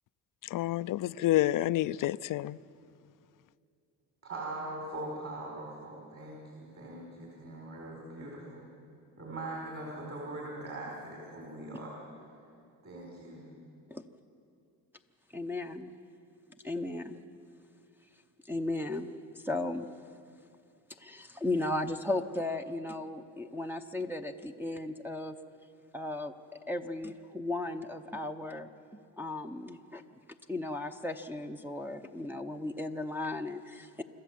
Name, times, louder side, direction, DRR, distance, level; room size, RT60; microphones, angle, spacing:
voice 1, 0.5-2.6, left 14 dB, 55° left, 0.5 m, -28 dB
voice 2, 4.2-8.6 9.2-12.0 12.8-13.5, right 2 dB, 40° right, 4.9 m, -41 dB
voice 3, 15.3-15.9 16.6-17.2 18.5-19.9 21.0-25.4 25.9-28.7 29.2-30.0 30.5-34.0, left 2 dB, 5° right, 0.7 m, -35 dB
26.5 x 13.0 x 7.6 m
cardioid pair, 100°, 39 cm